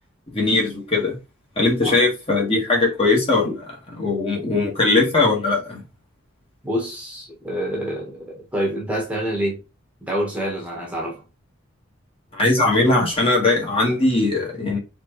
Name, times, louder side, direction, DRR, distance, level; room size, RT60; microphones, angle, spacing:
voice 1, 0.3-1.2 1.6-5.8 12.3-14.8, left 2 dB, 25° left, 1.6 m, -20 dB
voice 2, 6.6-9.6 10.0-11.2, equal, 5° right, 1.3 m, -27 dB
4.4 x 3.8 x 3.1 m
head